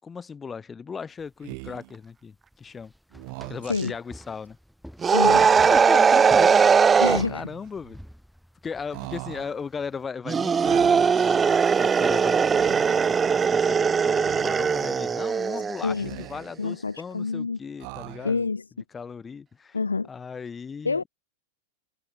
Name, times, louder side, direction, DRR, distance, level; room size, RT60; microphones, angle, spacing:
voice 1, 0.0-2.9 3.5-4.6 5.5-8.0 8.6-18.4 18.9-19.8 20.1-21.0, left 6 dB, 15° left, 7.9 m, -37 dB
sound 1, 1.2-10.1, equal, ahead, 5.6 m, -49 dB
Speech, 1.4-1.9 3.1-3.9 5.1-5.8 7.0-7.7 8.9-9.6 10.6-11.4 12.4-13.1 14.2-14.9 15.8-16.6 17.8-18.5, right 36 dB, 45° right, 2.1 m, -40 dB
sound 2, 5.0-7.2 10.3-15.8, right 6 dB, 20° right, 0.3 m, -20 dB
voice 2, 5.1-5.5 7.0-7.4 15.8-16.1 16.6-17.6 18.2-18.6 19.7-20.1 20.8-21.0, left 4 dB, 75° left, 0.7 m, -27 dB
figure-of-eight pair, 90°, 0 cm